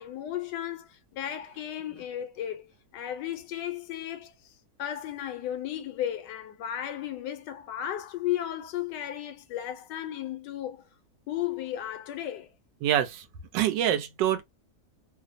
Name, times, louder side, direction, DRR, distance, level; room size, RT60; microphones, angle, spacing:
voice 1, 0.0-4.5 4.8-10.8 11.3-12.5, left 11 dB, 80° left, 1.2 m, -34 dB
voice 2, 12.8-13.2 13.5-14.4, right 11 dB, 90° right, 1.3 m, -25 dB
3.2 x 2.0 x 2.5 m
omnidirectional pair, 1.9 m